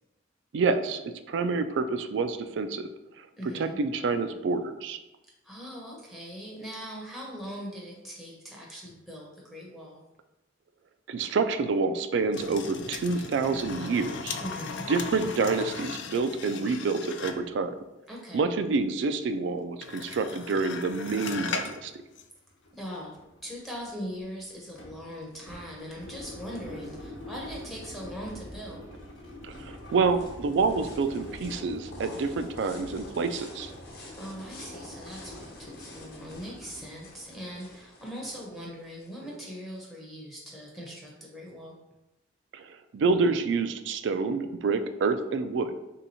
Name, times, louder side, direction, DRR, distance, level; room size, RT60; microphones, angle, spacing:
voice 1, 0.5-2.9 3.2-3.3 3.5-5.0 11.1-14.4 14.9-17.8 18.3-21.9 29.4-33.7 42.5-45.8, right 4 dB, 70° right, 10 dB, 0.3 m, -28 dB
voice 2, 3.4-3.8 5.4-10.0 14.4-14.9 18.1-18.5 22.7-23.2 23.4-28.8 34.2-41.8, equal, ahead, -4 dB, 0.6 m, -40 dB
sound 1, 12.3-17.6 19.8-21.8 22.2-22.3, left 5 dB, 70° left, 0.4 m, -37 dB
sound 2, 22.1-22.2 22.5-37.3, left 1 dB, 90° left, 0.9 m, -45 dB
sound 3, 29.0-39.9, left 1 dB, 55° left, 0.9 m, -49 dB
3.5 x 2.8 x 4.0 m, 1.0 s
head